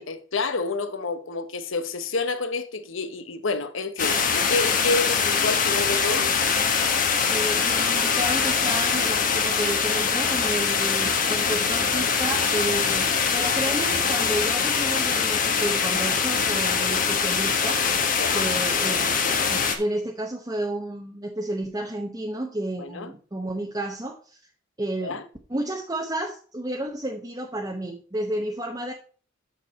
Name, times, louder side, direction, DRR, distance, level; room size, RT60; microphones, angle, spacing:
voice 1, 0.0-6.3 18.1-18.5 22.8-23.1 25.0-25.2, left 3 dB, 75° left, 1.0 m, -29 dB
sound 1, 4.0-19.8, left 6 dB, 45° left, 1.2 m, -23 dB
sound 2, 4.4-11.2, left 4 dB, 20° left, 1.4 m, -41 dB
voice 2, 7.3-17.8 18.3-19.2 19.5-24.4 24.8-25.2 25.5-28.9, right 1 dB, 20° right, 0.8 m, -31 dB
8.0 x 6.6 x 4.2 m
head